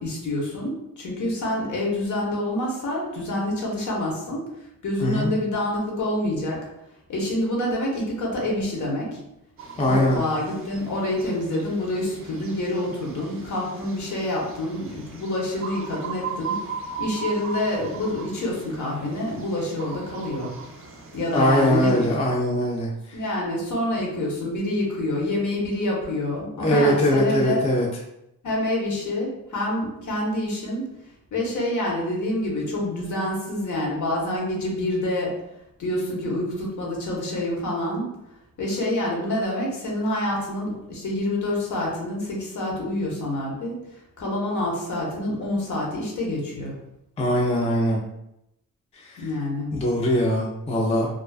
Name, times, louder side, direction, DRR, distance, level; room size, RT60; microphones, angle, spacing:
voice 1, 0.0-6.7 7.1-9.2 9.9-16.6 17.0-22.1 23.1-27.7 28.4-30.8 31.3-35.4 35.8-38.1 38.6-43.8 44.2-46.8 49.2-49.7, left 1 dB, 60° left, -2 dB, 0.9 m, -27 dB
voice 2, 5.0-5.3 9.8-10.2 21.3-23.2 26.6-27.9 47.2-48.0 49.0-49.2 49.7-51.1, equal, 20° left, -2 dB, 0.3 m, -21 dB
sound 1, 9.6-22.1, right 5 dB, 40° right, 0.5 m, -38 dB
2.4 x 2.3 x 2.3 m, 0.85 s
cardioid pair, 105°, 34 cm